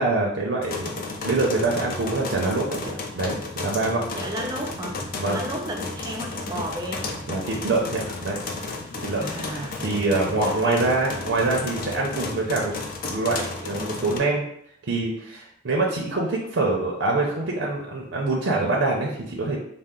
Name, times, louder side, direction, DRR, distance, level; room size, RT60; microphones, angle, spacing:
voice 1, 0.0-4.0 5.2-5.4 7.3-8.4 9.0-9.3 9.8-12.8 13.0-14.4 14.8-19.6, right 2 dB, 75° right, -2 dB, 0.6 m, -25 dB
sound 1, 0.6-14.2, left 3 dB, 45° left, 0.5 m, -33 dB
voice 2, 4.2-7.0 9.2-9.8 10.1-10.8, right 1 dB, 20° right, 1 dB, 0.4 m, -33 dB
4.2 x 2.0 x 3.7 m, 0.72 s
head